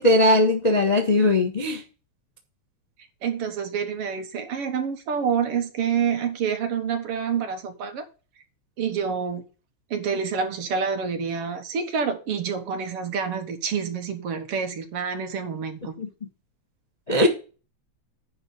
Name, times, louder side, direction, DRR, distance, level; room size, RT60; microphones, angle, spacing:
voice 1, 0.0-1.8 16.0-16.1 17.1-17.3, left 1 dB, 90° left, 0.3 m, -19 dB
voice 2, 3.2-8.0 8.8-9.4 9.9-15.9 17.2-17.3, right 6 dB, 60° right, 1.9 m, -27 dB
10.0 x 3.9 x 6.9 m
omnidirectional pair, 3.4 m